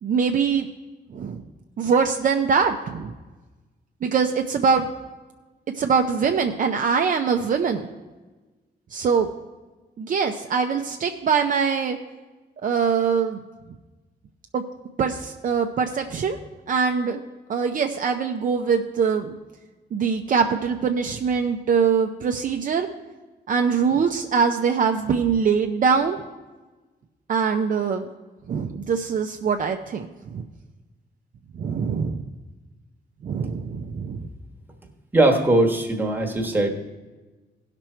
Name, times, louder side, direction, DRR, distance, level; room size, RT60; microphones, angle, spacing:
voice 1, 0.0-0.7 1.1-1.4 1.8-3.1 4.0-4.9 5.7-7.9 8.9-9.3 10.0-12.0 12.6-13.4 14.5-14.6 15.0-16.4 16.7-17.2 17.5-19.3 19.9-22.9 23.5-26.2 27.3-28.1 28.5-30.4 31.5-32.2 33.2-34.3, right 6 dB, 45° right, 4 dB, 0.6 m, -23 dB
voice 2, 35.1-36.7, right 1 dB, 10° right, 1 dB, 1.2 m, -20 dB
16.5 x 6.0 x 4.4 m, 1.2 s
wide cardioid pair, 150°, 18 cm